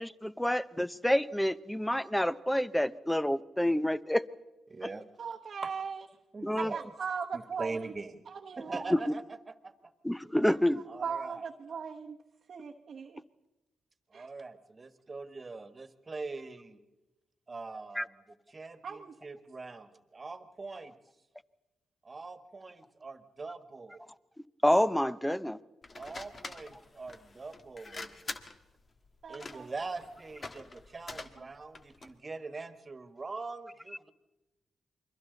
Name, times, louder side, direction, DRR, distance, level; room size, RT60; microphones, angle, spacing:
voice 1, 0.0-4.2 6.4-6.7 8.9-9.0 10.0-10.8 18.0-18.1 24.6-25.6, left 1 dB, 5° left, 16 dB, 0.8 m, -28 dB
voice 2, 4.7-5.1 5.6-5.7 6.3-6.9 7.3-8.2 8.6-9.7 10.9-11.5 14.1-16.8 17.5-18.2 18.5-20.9 22.0-24.1 26.0-28.3 29.3-34.1, right 3 dB, 35° right, 10 dB, 1.6 m, -42 dB
voice 3, 5.2-6.0 6.6-7.9 8.3-8.8 11.0-12.2 12.5-13.2 14.1-14.3 18.8-19.1 29.2-29.7, right 6 dB, 60° right, -1 dB, 1.0 m, -38 dB
sound 1, 25.8-32.2, left 3 dB, 45° left, 1.5 m, -46 dB
29.0 x 22.5 x 4.1 m, 1.0 s
supercardioid pair, 60°, 0 cm